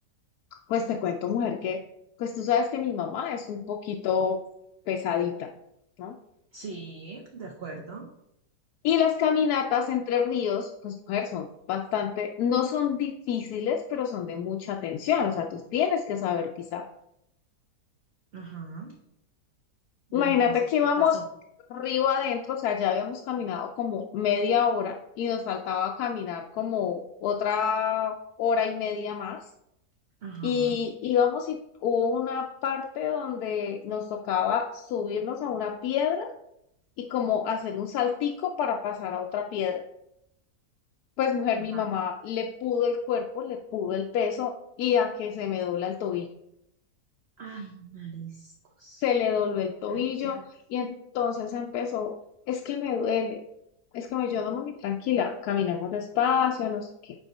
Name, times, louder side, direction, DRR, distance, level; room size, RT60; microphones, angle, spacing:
voice 1, 0.7-1.8 2.2-4.4 4.9-5.5 6.0-6.2 8.8-16.8 20.1-21.2 21.7-29.4 30.4-36.3 37.0-39.8 41.2-46.3 49.0-50.4 50.7-52.1 52.5-53.4 53.9-57.2, left 7 dB, 75° left, 2 dB, 1.0 m, -27 dB
voice 2, 6.5-8.1 18.3-18.9 20.1-20.5 21.0-21.2 30.2-30.8 41.7-41.8 47.4-48.5 48.8-49.0 49.9-50.4, right 5 dB, 50° right, 1 dB, 0.8 m, -40 dB
7.1 x 4.8 x 4.1 m, 0.81 s
omnidirectional pair, 1.7 m